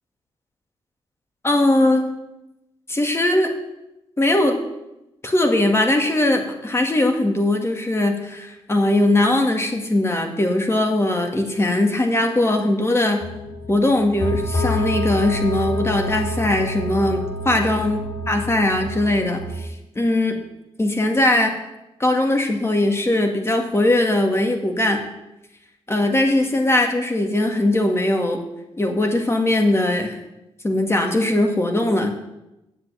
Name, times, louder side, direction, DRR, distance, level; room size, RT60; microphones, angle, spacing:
voice 1, 1.4-2.0 2.9-3.5 4.2-4.6 5.2-13.3 13.7-19.7 20.0-20.4 20.8-21.5 22.0-25.0 25.9-28.4 28.8-30.2 30.6-32.1, left 1 dB, 25° left, 3 dB, 2.1 m, -20 dB
sound 1, 13.2-19.5, left 1 dB, 55° left, 4.5 m, -28 dB
8.1 x 7.6 x 8.8 m, 0.91 s
cardioid pair, 75°, 10 cm